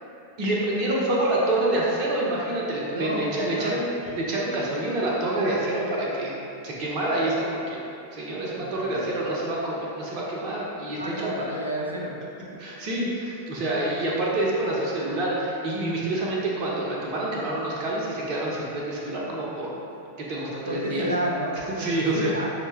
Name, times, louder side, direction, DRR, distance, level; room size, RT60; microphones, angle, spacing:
voice 1, 0.4-6.4 6.6-7.8 8.1-11.6 12.6-19.7 20.2-21.1 21.7-22.3, right 1 dB, 40° right, -4 dB, 0.8 m, -27 dB
voice 2, 2.9-3.7 8.4-9.2 11.0-12.1 20.7-22.5, right 1 dB, 80° right, -2 dB, 0.5 m, -31 dB
5.2 x 2.2 x 3.4 m, 2.8 s
figure-of-eight pair, 90°, 0 cm